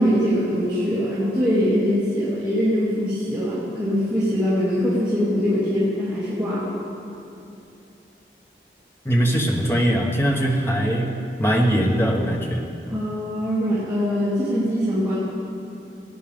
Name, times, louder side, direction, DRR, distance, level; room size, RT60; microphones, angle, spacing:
voice 1, 0.0-6.7 12.9-15.2, equal, 10° right, -12 dB, 2.5 m, -22 dB
voice 2, 9.0-12.6, equal, 15° left, 0 dB, 1.1 m, -21 dB
18.5 x 9.6 x 3.6 m, 2.7 s
head